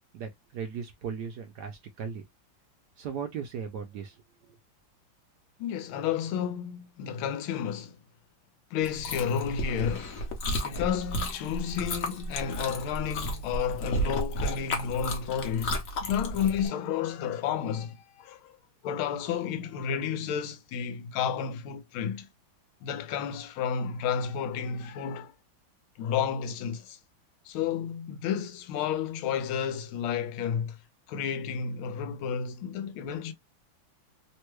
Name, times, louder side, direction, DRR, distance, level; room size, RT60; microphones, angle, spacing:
voice 1, 0.1-2.2 3.0-4.6, right 7 dB, 70° right, 1.0 m, -37 dB
voice 2, 5.6-8.0 8.7-10.3 10.6-18.5 18.8-22.3 22.8-25.3 26.0-27.0 27.4-30.8 31.1-33.3, left 8 dB, 90° left, 1.5 m, -31 dB
Chewing mastication, 8.8-16.7, equal, 55° left, 1.0 m, -33 dB
3.5 x 2.2 x 3.0 m
omnidirectional pair, 2.2 m